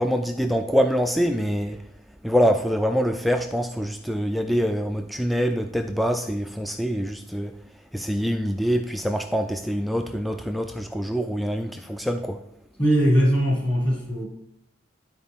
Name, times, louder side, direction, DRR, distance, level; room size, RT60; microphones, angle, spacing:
voice 1, 0.0-1.8 2.2-7.6 7.9-12.4, equal, ahead, 0.3 m, -25 dB
voice 2, 12.8-14.3, equal, 25° left, 1.9 m, -20 dB
12.5 x 4.4 x 3.5 m
head